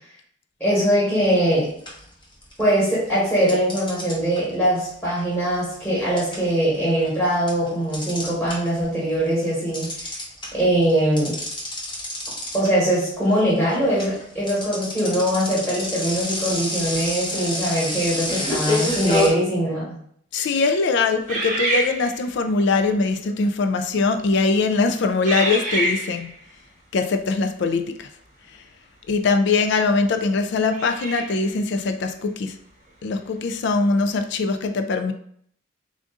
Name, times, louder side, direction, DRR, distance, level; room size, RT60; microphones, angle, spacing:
voice 1, 0.6-1.7 2.6-10.1 10.5-11.4 12.5-19.9, right 1 dB, 5° left, -7 dB, 1.2 m, -22 dB
sound 1, 1.3-1.5 1.9-2.8 3.5-8.9 9.2-19.3, left 2 dB, 25° left, 0.8 m, -28 dB
voice 2, 20.3-26.3 26.9-28.1 28.5-28.6 29.1-32.6 33.0-35.1, left 3 dB, 60° left, 7 dB, 0.4 m, -22 dB
sound 2, 21.3-22.5 23.2-23.5 24.2-24.5 25.2-26.4 29.1-29.2 30.7-31.5, right 1 dB, 40° right, 0.8 m, -27 dB
3.6 x 2.6 x 3.6 m, 0.64 s
head